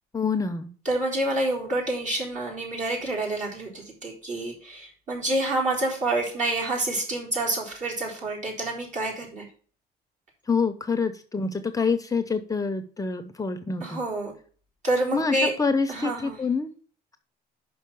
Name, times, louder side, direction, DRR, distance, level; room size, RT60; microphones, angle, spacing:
voice 1, 0.1-0.7 10.5-14.0 15.1-16.7, left 4 dB, 20° left, 8 dB, 0.7 m, -26 dB
voice 2, 0.9-9.5 13.8-14.3 14.8-15.5 15.9-16.4, right 1 dB, 45° right, -2 dB, 4.0 m, -28 dB
5.6 x 5.5 x 6.9 m, 0.43 s
cardioid pair, 110°, 17 cm